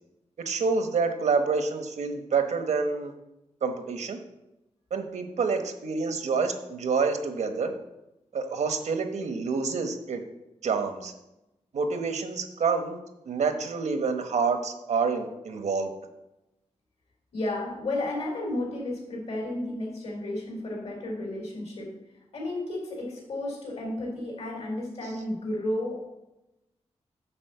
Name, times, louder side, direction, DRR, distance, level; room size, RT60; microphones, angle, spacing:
voice 1, 0.4-3.1 3.6-4.2 4.9-7.7 8.3-10.2 10.6-11.1 11.7-13.0 13.2-15.9, right 5 dB, 80° right, 6 dB, 1.0 m, -27 dB
voice 2, 17.3-21.9 22.3-26.1, left 1 dB, 65° left, -2 dB, 3.5 m, -32 dB
8.9 x 4.2 x 6.6 m, 0.93 s
wide cardioid pair, 165°, 12 cm